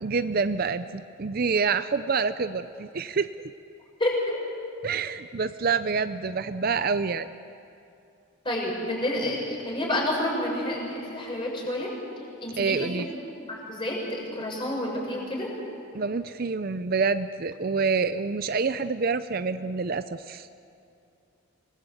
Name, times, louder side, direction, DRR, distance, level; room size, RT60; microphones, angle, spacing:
voice 1, 0.0-3.3 4.8-7.3 12.6-13.1 15.9-20.5, right 5 dB, 45° right, 12 dB, 0.5 m, -27 dB
voice 2, 4.0-4.4 8.4-11.9 12.4-13.1 13.5-15.5, left 1 dB, 25° left, -2 dB, 6.2 m, -29 dB
26.0 x 20.0 x 8.0 m, 2.5 s
head